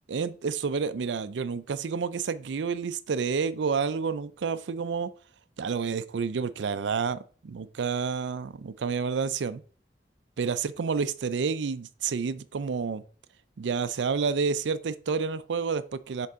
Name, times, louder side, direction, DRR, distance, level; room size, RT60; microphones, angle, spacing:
voice 1, 0.1-5.1 5.6-9.6 10.4-13.0 13.6-16.3, right 5 dB, 75° right, 0.4 m, -29 dB
6.6 x 4.6 x 3.6 m
head